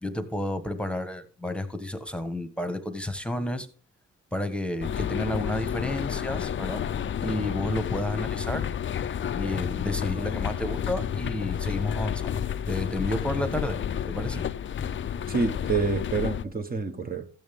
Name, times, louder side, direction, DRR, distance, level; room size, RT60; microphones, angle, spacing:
voice 1, 0.0-3.7 4.3-6.9 7.2-8.7 9.3-12.4 12.7-13.8 14.1-14.5, left 1 dB, 5° left, 1.3 m, -31 dB
sound 1, 4.8-16.4, left 9 dB, 40° left, 0.6 m, -30 dB
voice 2, 15.3-17.3, right 4 dB, 30° right, 1.2 m, -27 dB
14.0 x 8.8 x 3.7 m
cardioid pair, 90°, 30 cm